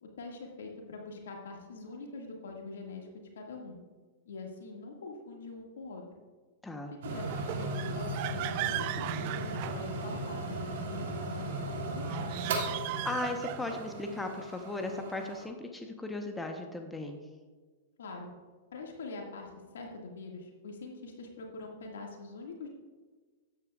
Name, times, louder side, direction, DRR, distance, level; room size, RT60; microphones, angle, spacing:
voice 1, 0.0-3.1 3.4-3.8 4.3-6.0 7.0-11.5 11.9-12.3 18.0-18.3 18.7-22.7, left 3 dB, 80° left, 1 dB, 1.9 m, -44 dB
sound 1, 7.0-15.4, right 2 dB, 70° right, 2.2 m, -37 dB
sound 2, 7.2-10.4 12.0-14.0, right 15 dB, 50° right, 0.4 m, -38 dB
voice 2, 12.9-17.2, left 2 dB, 10° left, 4 dB, 1.0 m, -37 dB
12.5 x 9.3 x 2.4 m, 1.4 s
hypercardioid pair, 115°, 0 cm